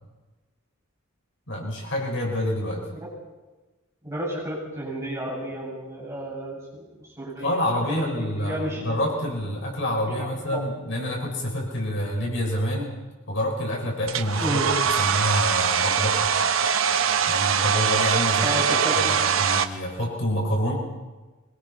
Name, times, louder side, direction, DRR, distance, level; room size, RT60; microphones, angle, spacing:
voice 1, 1.5-2.8 7.4-13.0 13.3-14.6 15.0-16.3 17.3-18.6 18.9-20.7, equal, 60° left, -1 dB, 6.3 m, -27 dB
voice 2, 4.0-8.8 10.2-10.6 14.4-14.7 18.4-19.1, right 1 dB, 15° right, -5 dB, 7.5 m, -32 dB
Domestic sounds home sounds, 14.1-19.7, right 7 dB, 80° right, 1.1 m, -22 dB
23.5 x 21.0 x 5.8 m, 1.2 s
head